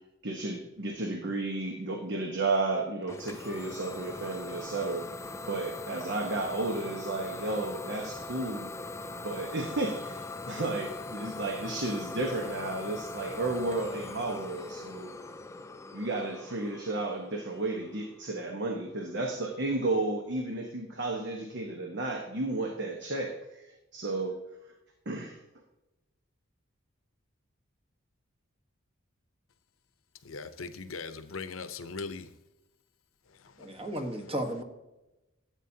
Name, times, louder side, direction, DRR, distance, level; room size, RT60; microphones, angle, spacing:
voice 1, 0.2-5.1 5.4-8.7 9.0-15.1 15.9-23.6 23.9-24.4 25.0-25.4, right 2 dB, 60° right, 1.1 m, -33 dB
Idling / Domestic sounds home sounds, 3.1-18.6, left 2 dB, 15° left, 0.3 m, -41 dB
voice 2, 30.2-32.3 33.3-34.3, left 4 dB, 80° left, 0.8 m, -41 dB
voice 3, 33.6-34.6, right 1 dB, 30° right, 1.3 m, -34 dB
13.0 x 8.2 x 2.8 m
head